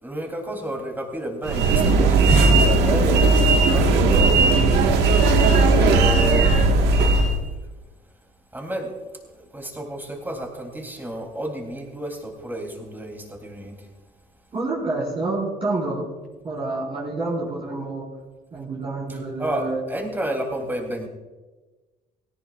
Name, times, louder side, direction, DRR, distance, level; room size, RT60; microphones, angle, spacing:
voice 1, 0.0-4.6 5.7-7.1 8.5-8.9 9.5-13.9 19.4-21.1, right 1 dB, 10° right, 2 dB, 3.2 m, -31 dB
sound 1, 1.4-7.4, right 3 dB, 85° right, 1.6 m, -17 dB
voice 2, 14.5-16.1 16.4-18.1 18.5-19.8, right 2 dB, 35° right, -6 dB, 4.8 m, -28 dB
18.5 x 17.5 x 2.5 m, 1.2 s
cardioid pair, 110°, 17 cm